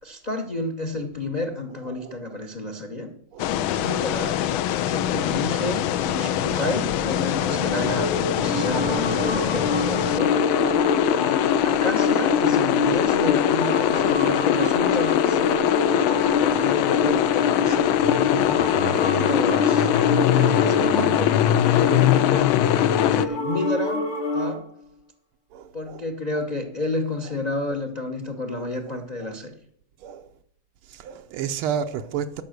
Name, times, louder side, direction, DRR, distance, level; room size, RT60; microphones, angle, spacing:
voice 1, 0.0-3.1 3.8-4.4 4.8-10.4 11.1-18.0 18.5-19.9 20.6-22.5 23.1-24.0 24.3-24.6 25.7-29.5, left 2 dB, 40° left, 0.6 m, -30 dB
voice 2, 1.7-2.4 3.3-3.5 3.8-4.0 6.0-6.2 10.8-11.1 13.2-13.3 14.8-14.9 16.4-17.0 19.0-19.2 20.3-20.6 21.2-22.0 23.5-23.7 25.5-26.0 26.3-26.5 27.2-27.4 28.5-29.4 30.0-30.3 30.9-32.4, right 8 dB, 85° right, 1.5 m, -35 dB
sound 1, 3.4-23.3, left 12 dB, 80° left, 1.4 m, -22 dB
sound 2, 7.0-24.6, left 2 dB, 65° left, 1.9 m, -27 dB
12.5 x 5.7 x 6.5 m
omnidirectional pair, 2.3 m